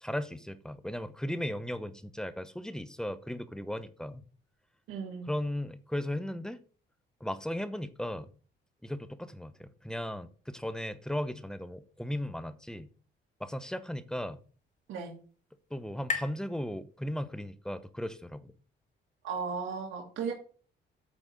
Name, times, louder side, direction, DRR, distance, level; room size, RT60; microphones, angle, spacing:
voice 1, 0.0-4.2 5.3-6.6 7.2-8.3 8.8-12.9 13.4-14.4 15.7-18.5, left 1 dB, 5° left, 0.8 m, -36 dB
voice 2, 4.9-5.3 14.9-15.2 19.2-20.3, right 5 dB, 85° right, 1.8 m, -35 dB
sound 1, 13.8-17.5, left 4 dB, 40° left, 1.5 m, -42 dB
8.8 x 4.1 x 6.3 m
cardioid pair, 90°, 20 cm